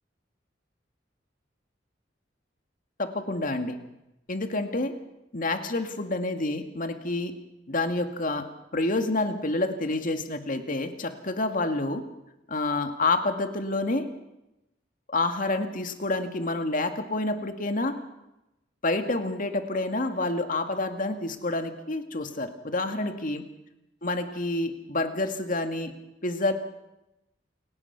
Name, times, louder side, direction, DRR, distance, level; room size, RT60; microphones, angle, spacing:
voice 1, 3.0-3.8 4.3-4.9 5.3-7.3 7.7-8.5 8.7-12.0 12.5-14.1 15.1-17.9 18.8-23.4 24.0-25.9 26.2-26.5, left 2 dB, 45° left, 6 dB, 2.2 m, -28 dB
28.5 x 17.5 x 6.0 m, 0.91 s
head